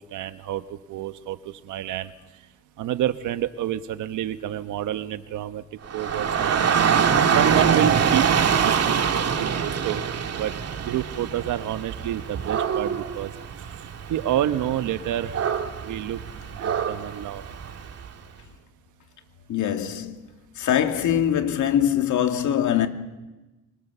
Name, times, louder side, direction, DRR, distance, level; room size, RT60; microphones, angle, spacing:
voice 1, 0.1-2.1 2.8-5.6 5.9-6.8 7.3-8.2 8.5-10.1 10.3-10.5 10.8-13.3 14.1-15.4 15.8-16.2 16.5-17.4, right 11 dB, 85° right, 1.3 m, -29 dB
Dog / Rain, 5.9-18.0, right 7 dB, 55° right, 2.2 m, -24 dB
voice 2, 19.5-20.3 20.6-22.9, left 10 dB, 75° left, 2.3 m, -23 dB
24.5 x 24.5 x 6.9 m
cardioid pair, 90°, 30 cm